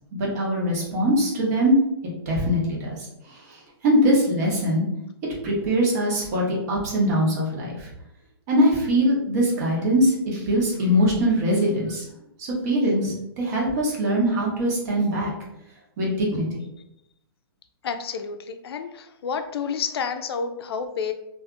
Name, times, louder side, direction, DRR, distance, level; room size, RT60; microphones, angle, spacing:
voice 1, 0.1-1.8 2.3-3.0 3.3-4.8 5.4-7.9 8.5-12.0 12.4-15.3 16.0-16.6, equal, 45° right, -3 dB, 0.9 m, -22 dB
voice 2, 17.8-18.4 18.6-18.9 19.2-21.1, left 6 dB, 75° left, 8 dB, 0.4 m, -29 dB
2.7 x 2.4 x 2.4 m, 0.83 s
hypercardioid pair, 155°, 13 cm